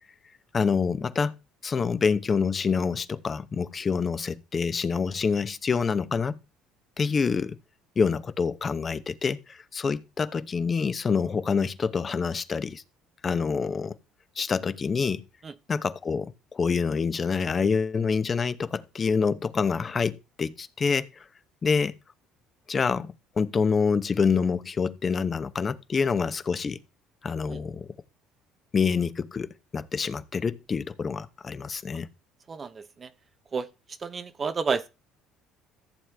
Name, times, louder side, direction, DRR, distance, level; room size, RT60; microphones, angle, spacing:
voice 1, 0.5-1.3 1.6-6.4 7.0-7.6 8.0-12.8 13.2-14.0 14.4-15.2 15.7-21.2 21.6-21.9 22.7-26.8 27.2-27.9 28.7-32.1, left 5 dB, 35° left, 0.8 m, -27 dB
voice 2, 32.5-33.1 33.5-33.7 34.0-34.9, right 5 dB, 35° right, 0.7 m, -30 dB
14.5 x 7.2 x 3.4 m
supercardioid pair, 85°, 0 cm